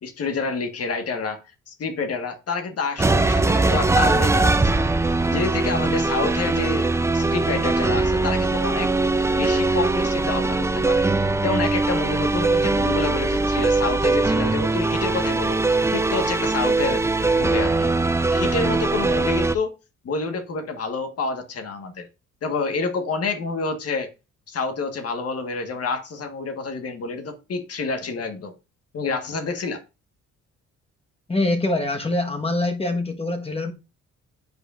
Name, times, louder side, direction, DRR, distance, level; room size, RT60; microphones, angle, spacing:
voice 1, 0.0-6.9 7.1-8.9 9.3-11.0 11.4-15.6 15.9-17.0 17.3-17.9 18.3-19.8 20.0-22.1 22.4-24.1 24.5-28.5 28.9-29.8, left 4 dB, 50° left, 1.6 m, -28 dB
sound 1, 3.0-19.6, right 3 dB, 10° right, 0.4 m, -21 dB
voice 2, 31.3-33.7, left 2 dB, 20° left, 1.4 m, -24 dB
9.8 x 5.1 x 2.5 m
cardioid pair, 90°, 30 cm